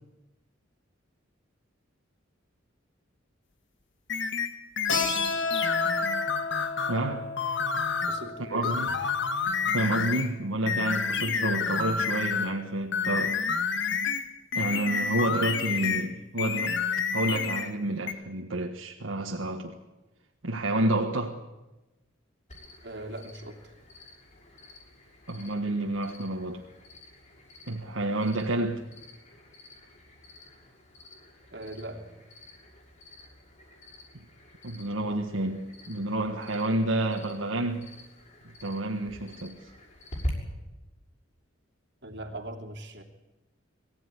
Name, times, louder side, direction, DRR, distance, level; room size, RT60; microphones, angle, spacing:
sound 1, 4.1-7.0 7.4-8.3 8.6-10.3 10.7-12.6 12.9-16.1 16.4-17.7 18.1-18.2, left 6 dB, 65° left, 1.7 m, -29 dB
Keyboard (musical), 4.9-10.2, left 3 dB, 85° left, 4.9 m, -33 dB
voice 1, 6.9-7.3 8.4-8.9 9.7-13.4 14.5-16.8 17.1-19.8 20.4-21.4 25.3-26.6 27.7-28.9 34.1-34.2 34.6-37.9 38.6-39.6, right 1 dB, 90° right, 1.6 m, -29 dB
voice 2, 8.1-8.8 11.4-11.5 22.8-23.6 31.5-32.1 42.0-43.0, right 1 dB, 60° right, 3.1 m, -40 dB
Cricket, 22.5-40.3, left 1 dB, 40° left, 6.3 m, -46 dB
22.5 x 16.0 x 9.9 m
head